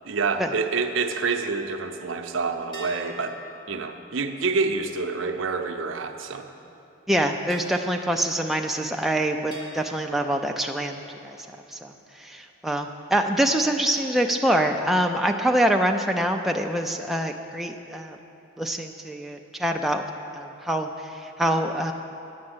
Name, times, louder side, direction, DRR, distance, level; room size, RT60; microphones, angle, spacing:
voice 1, 0.0-3.4 3.7-6.5, right 4 dB, 75° right, 6 dB, 0.6 m, -27 dB
sound 1, 2.7-6.4 7.5-9.0 9.5-11.2, right 1 dB, 25° left, 1.7 m, -47 dB
voice 2, 7.1-11.4 11.7-11.9 12.2-18.2 18.6-20.0 20.3-21.9, right 1 dB, ahead, 2 dB, 0.3 m, -25 dB
9.6 x 6.4 x 7.8 m, 2.9 s
head